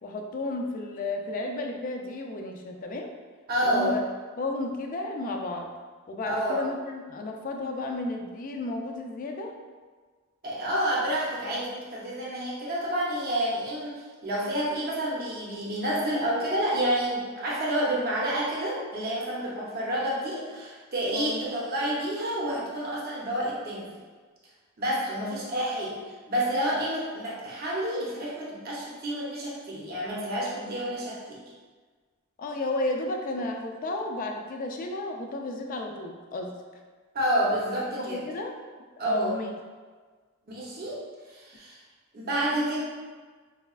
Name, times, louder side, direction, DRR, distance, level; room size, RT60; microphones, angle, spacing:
voice 1, 0.0-3.1 3.6-4.0 4.4-5.7 6.1-9.6 21.1-21.5 25.2-25.3 26.7-26.8 32.4-36.6 38.0-38.5 39.0-39.5, left 2 dB, 40° left, 2 dB, 0.3 m, -33 dB
voice 2, 3.5-3.9 6.2-6.6 10.4-23.9 24.8-26.0 26.3-31.4 37.1-38.2 39.0-39.4 40.5-41.0 41.3-41.8 42.1-42.8, right 1 dB, 45° right, -5 dB, 0.6 m, -29 dB
4.8 x 2.2 x 2.3 m, 1.5 s
head